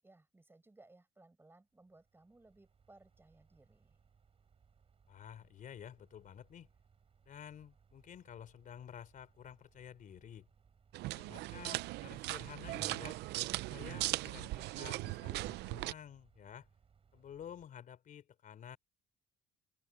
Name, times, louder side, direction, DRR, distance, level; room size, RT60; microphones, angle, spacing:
voice 1, 0.0-4.0, right 2 dB, 15° right, 7.5 m, -63 dB
sound 1, 1.7-17.7, right 6 dB, 35° right, 4.6 m, -69 dB
voice 2, 5.1-6.7 7.3-10.5 11.1-13.2 13.7-16.7 17.1-18.8, left 9 dB, 50° left, 3.7 m, -51 dB
sound 2, 10.9-15.9, right 19 dB, 80° right, 0.5 m, -39 dB
cardioid pair, 110°, 17 cm